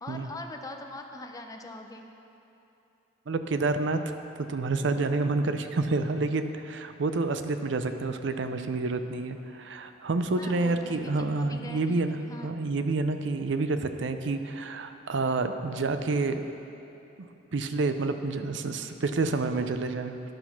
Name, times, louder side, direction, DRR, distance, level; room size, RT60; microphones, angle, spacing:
voice 1, 0.0-2.1 10.4-12.5, left 2 dB, 20° left, 3 dB, 0.5 m, -42 dB
voice 2, 3.3-12.2 12.4-16.4 17.5-20.1, right 3 dB, 65° right, 8 dB, 0.5 m, -28 dB
10.5 x 6.0 x 5.9 m, 2.9 s
head